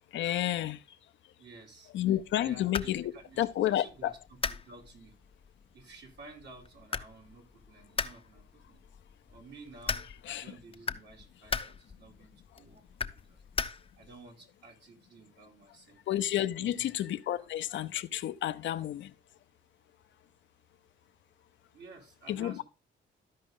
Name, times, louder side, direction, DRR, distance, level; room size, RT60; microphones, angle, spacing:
voice 1, 0.1-0.8 1.9-3.1 3.4-4.1 10.2-10.5 11.5-11.6 16.1-19.1 22.3-22.6, left 12 dB, 70° left, 0.6 m, -31 dB
voice 2, 1.4-1.9 2.4-4.2 4.5-5.2 5.7-8.8 9.3-10.0 10.4-12.8 13.3-13.4 14.0-16.0 16.6-16.9 17.3-17.5 21.7-22.6, right 3 dB, 60° right, 2.8 m, -52 dB
sound 1, 2.2-14.2, left 5 dB, 30° left, 0.7 m, -40 dB
13.0 x 5.1 x 3.7 m
cardioid pair, 90°, 20 cm